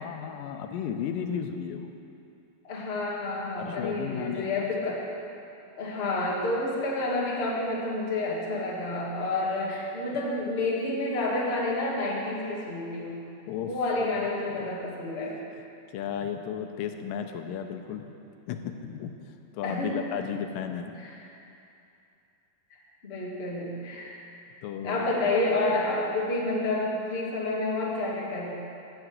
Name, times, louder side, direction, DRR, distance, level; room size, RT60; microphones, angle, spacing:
voice 1, 0.0-1.9 3.6-4.9 13.5-13.7 14.0-14.2 14.5-14.7 15.9-18.1 18.5-19.1 19.5-21.0 24.6-25.3, left 8 dB, 85° left, 6 dB, 2.3 m, -34 dB
voice 2, 2.6-5.1 5.8-13.2 13.6-15.4 19.6-20.0 21.0-21.1 23.0-24.2 24.8-28.5, left 2 dB, 30° left, -3 dB, 1.1 m, -29 dB
14.5 x 5.9 x 8.0 m, 2.7 s
omnidirectional pair, 4.0 m